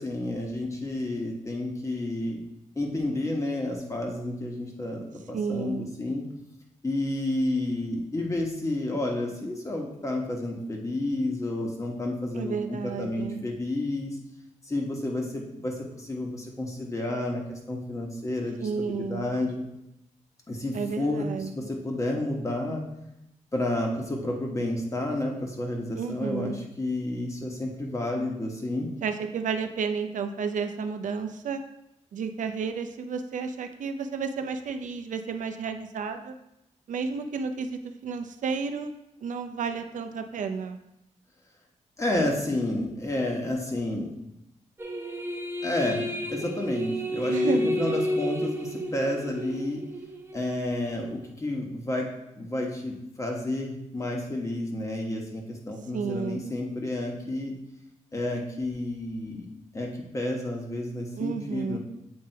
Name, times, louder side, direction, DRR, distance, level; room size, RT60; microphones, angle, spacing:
voice 1, 0.0-2.4 2.8-6.2 6.8-14.1 14.6-19.6 20.5-22.8 23.5-28.9 42.0-44.1 45.6-49.8 50.3-52.1 52.4-57.5 58.1-59.5 59.7-61.8, left 1 dB, 25° left, 0 dB, 1.1 m, -30 dB
voice 2, 5.3-5.9 12.3-13.4 18.6-19.3 20.7-21.5 26.0-26.6 29.0-31.6 32.1-36.3 36.9-38.9 39.2-40.8 47.3-47.7 55.9-56.4 61.2-61.8, right 5 dB, 80° right, 7 dB, 0.5 m, -31 dB
sound 1, 44.8-50.7, left 1 dB, 20° right, 0.6 m, -31 dB
7.9 x 3.4 x 4.4 m, 0.86 s
wide cardioid pair, 130°, 13 cm